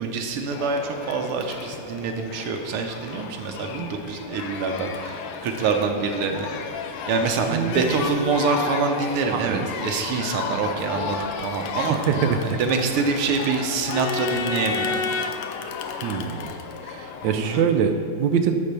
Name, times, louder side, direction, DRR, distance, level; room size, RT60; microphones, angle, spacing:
voice 1, 0.0-6.5 7.1-12.0 12.4-15.0 17.3-17.6, right 4 dB, 85° right, 4 dB, 1.8 m, -25 dB
Crowd, 0.5-17.6, left 5 dB, 85° left, 1.6 m, -32 dB
voice 2, 7.5-8.0 9.3-9.7 11.8-12.6 16.0-16.5 16.8-18.6, right 7 dB, 70° right, 7 dB, 1.2 m, -24 dB
10.5 x 4.3 x 6.8 m, 2.6 s
omnidirectional pair, 2.4 m